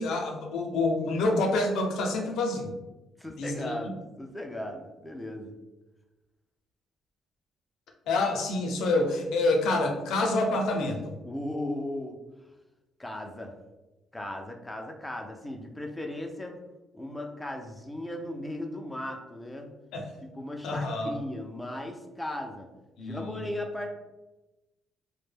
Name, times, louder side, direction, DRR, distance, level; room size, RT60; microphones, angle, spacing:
voice 1, 0.0-2.7 3.4-3.7 8.1-11.0 19.9-20.0 20.6-21.2 23.0-23.5, left 2 dB, 80° left, 2 dB, 0.5 m, -27 dB
voice 2, 3.2-5.5 11.2-12.2 13.0-13.5 14.1-16.6 16.9-19.7 20.2-22.7 23.0-23.9, left 1 dB, 10° left, 2 dB, 0.4 m, -37 dB
2.1 x 2.1 x 3.1 m, 1.0 s
cardioid pair, 90°, 0 cm